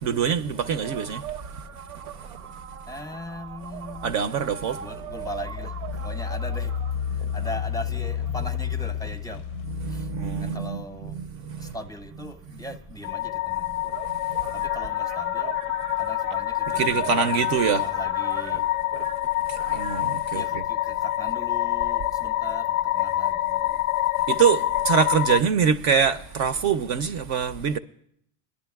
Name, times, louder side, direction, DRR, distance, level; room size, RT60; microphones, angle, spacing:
voice 1, 0.0-1.2 2.3-2.4 4.0-4.9 7.3-7.5 9.7-11.8 14.3-14.4 16.7-17.9 19.5-20.6 24.3-27.8, right 7 dB, 45° right, 0.5 m, -25 dB
sound 1, 0.6-9.4 10.0-11.8 13.0-13.1 13.2-20.0, right 9 dB, 85° right, 0.8 m, -41 dB
voice 2, 2.9-4.1 4.8-5.7 6.0-6.7 7.3-9.4 10.5-11.1 11.7-13.6 14.7-15.5 16.0-17.4 17.7-18.6 20.3-22.6 22.9-23.3, left 1 dB, 10° left, 0.7 m, -38 dB
Engine, 3.9-4.0 4.6-10.5, left 8 dB, 45° left, 0.5 m, -31 dB
sound 2, 13.0-25.4, left 14 dB, 90° left, 0.5 m, -26 dB
23.0 x 11.0 x 2.3 m
supercardioid pair, 125°, 41 cm